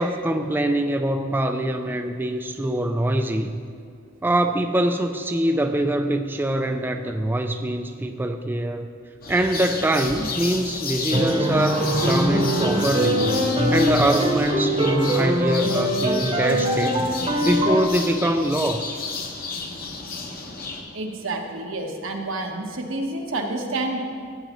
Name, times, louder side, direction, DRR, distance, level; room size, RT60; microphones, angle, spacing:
voice 1, 0.0-3.6 4.2-8.9 9.3-13.3 13.7-17.0 17.4-19.0, right 1 dB, 10° right, 5 dB, 0.3 m, -24 dB
sound 1, 9.2-20.8, left 4 dB, 45° left, 1.0 m, -32 dB
sound 2, 11.1-17.9, equal, 30° right, 0.9 m, -22 dB
voice 2, 20.9-24.0, right 2 dB, 85° right, 2 dB, 1.2 m, -29 dB
15.0 x 9.0 x 3.1 m, 2.2 s
head